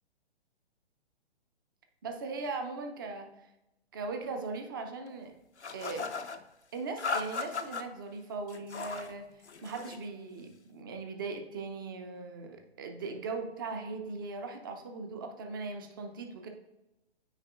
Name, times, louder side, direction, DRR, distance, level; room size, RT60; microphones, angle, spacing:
voice 1, 2.0-3.3 3.9-5.3 5.7-6.1 6.7-9.3 9.6-16.5, right 4 dB, 20° right, 5 dB, 0.4 m, -39 dB
sound 1, 5.6-6.4 7.0-7.8 8.5-9.1 9.4-10.0, left 4 dB, 90° left, 0.6 m, -36 dB
8.9 x 4.6 x 2.4 m, 0.95 s
figure-of-eight pair, 125°, 33 cm